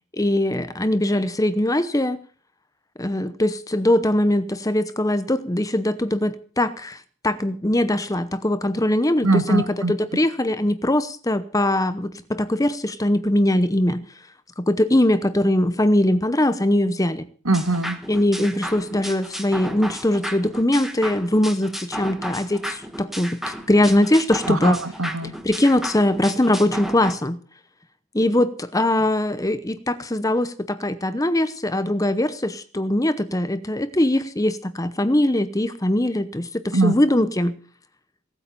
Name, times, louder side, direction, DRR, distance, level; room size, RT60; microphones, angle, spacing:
voice 1, 0.1-2.2 3.0-7.0 7.2-14.0 14.6-17.3 18.1-24.8 25.4-27.4 28.1-37.5, left 1 dB, 15° left, 13 dB, 0.8 m, -21 dB
voice 2, 9.2-9.9 17.5-18.0 24.5-25.3 36.7-36.9, right 2 dB, 70° right, 9 dB, 1.9 m, -22 dB
sound 1, 17.5-27.1, equal, ahead, 1.3 m, -34 dB
18.0 x 8.8 x 6.9 m, 0.43 s
head